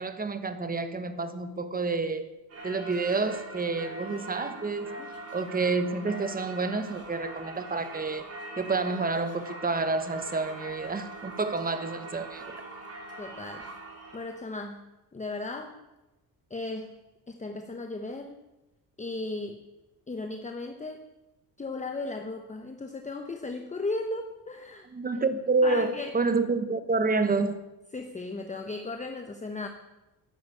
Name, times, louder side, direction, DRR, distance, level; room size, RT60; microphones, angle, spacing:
voice 1, 0.0-2.3 2.6-5.0 5.3-8.3 8.6-12.6 24.9-27.6, right 3 dB, 20° right, 1.2 m, -29 dB
Singing / Church bell, 2.5-14.4, right 2 dB, 40° right, 3.1 m, -42 dB
voice 2, 13.2-13.7 14.1-15.8 16.5-17.0 17.3-18.4 19.0-19.6 20.1-21.1 21.6-24.9 25.6-26.2 27.9-29.7, left 2 dB, 20° left, 1.0 m, -36 dB
12.5 x 11.0 x 8.5 m
cardioid pair, 130°, 39 cm